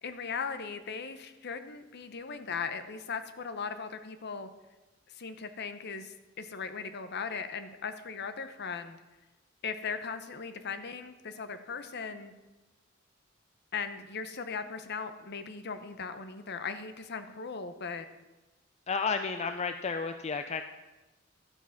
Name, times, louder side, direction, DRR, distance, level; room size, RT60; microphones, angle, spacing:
voice 1, 0.0-4.5 5.2-9.0 9.6-12.3 13.7-18.1, left 5 dB, 55° left, 10 dB, 0.8 m, -38 dB
voice 2, 18.9-20.6, left 5 dB, 35° left, 8 dB, 0.4 m, -32 dB
12.5 x 7.2 x 5.9 m, 1.1 s
head